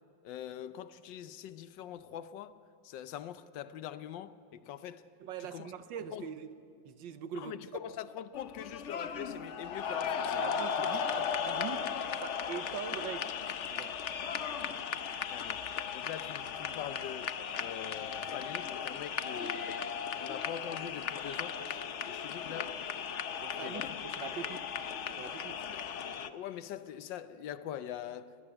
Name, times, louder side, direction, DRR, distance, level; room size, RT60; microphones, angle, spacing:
voice 1, 0.2-2.5 2.8-5.1 5.5-5.7 6.1-6.2 7.3-10.4 10.9-11.0 15.3-15.7 15.9-19.9 20.1-22.8 23.6-23.9 25.7-25.8 26.2-28.4, left 10 dB, 75° left, 1.3 m, -43 dB
voice 2, 5.2-6.5 6.8-7.6 10.3-11.9 12.2-13.3 13.7-14.0 23.4-24.6 25.2-25.6, right 8 dB, 75° right, 1.6 m, -42 dB
sound 1, 8.3-26.3, left 7 dB, 60° left, 0.8 m, -36 dB
20.5 x 17.5 x 9.0 m
omnidirectional pair, 2.1 m